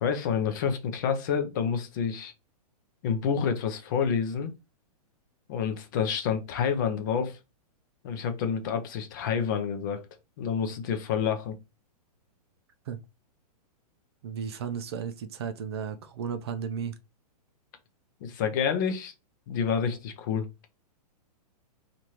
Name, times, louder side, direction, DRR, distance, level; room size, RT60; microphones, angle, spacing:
voice 1, 0.0-2.3 3.0-4.5 5.5-7.4 8.0-10.0 10.4-11.6 18.2-19.1 19.5-20.5, left 7 dB, 30° left, 0.5 m, -28 dB
voice 2, 14.2-16.9, right 7 dB, 40° right, 0.4 m, -34 dB
3.1 x 2.5 x 4.2 m
hypercardioid pair, 165°, 20 cm